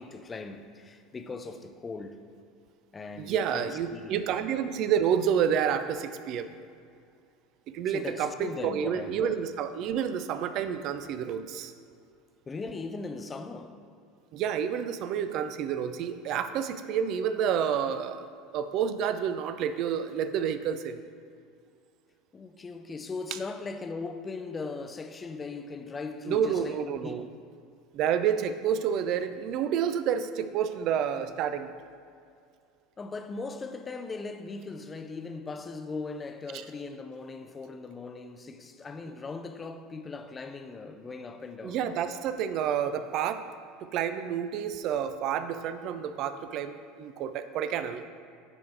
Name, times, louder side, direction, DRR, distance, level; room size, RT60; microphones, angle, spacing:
voice 1, 0.0-2.2 2.9-4.2 7.9-9.3 12.5-13.8 22.3-27.3 33.0-41.8, left 4 dB, 25° left, 0.4 m, -39 dB
voice 2, 3.2-6.6 7.7-11.7 14.3-18.2 18.5-21.0 26.3-27.2 27.9-31.7 41.6-43.4 43.8-48.0, right 8 dB, 50° right, 0.3 m, -29 dB
9.6 x 3.3 x 3.3 m
figure-of-eight pair, 70°, 0 cm